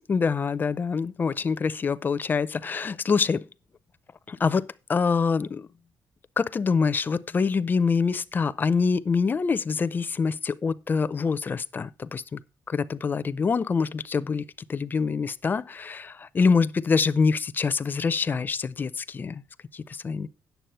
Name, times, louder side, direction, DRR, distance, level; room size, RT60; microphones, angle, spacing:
voice 1, 0.1-3.4 4.3-5.6 6.4-12.4 12.7-14.4 14.7-19.4 20.0-20.3, left 5 dB, 25° left, 0.4 m, -25 dB
9.2 x 7.1 x 5.4 m
cardioid pair, 180°, 8 cm